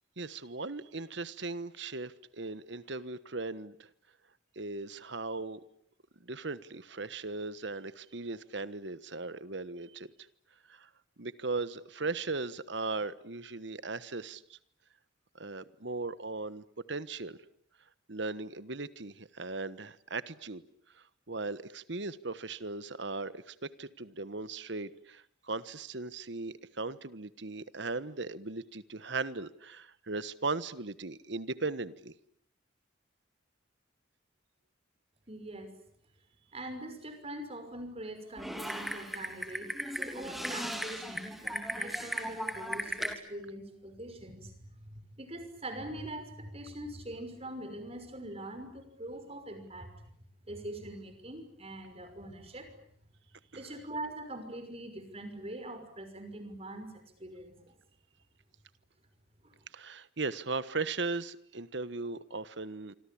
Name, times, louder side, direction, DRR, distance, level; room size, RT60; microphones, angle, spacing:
voice 1, 0.2-3.9 4.5-5.6 6.2-10.1 10.7-10.9 11.2-14.6 15.3-17.4 18.1-20.6 20.9-32.1 53.5-53.7 59.7-62.9, right 3 dB, 65° right, 15 dB, 1.3 m, -38 dB
voice 2, 35.3-35.7 36.5-39.7 40.0-49.9 50.5-52.7 53.5-56.9 57.2-57.7 59.4-59.6, right 1 dB, 30° right, 8 dB, 5.9 m, -43 dB
Typing, 38.4-43.1, equal, ahead, 3.3 m, -37 dB
27.0 x 25.0 x 8.7 m, 0.67 s
head